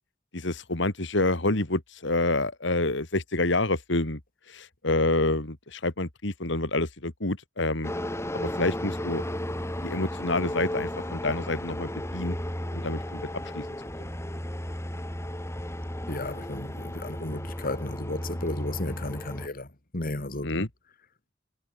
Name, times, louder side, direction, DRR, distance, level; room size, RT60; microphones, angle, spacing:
voice 1, 0.3-4.2 4.5-7.9 8.3-9.2 9.8-12.3 12.7-13.2 13.5-13.7 20.4-20.7, left 2 dB, 65° left, 2.7 m, -27 dB
sound 1, 7.8-19.5, left 1 dB, 15° left, 3.7 m, -34 dB
voice 2, 16.1-20.5, left 2 dB, 50° left, 2.6 m, -34 dB
head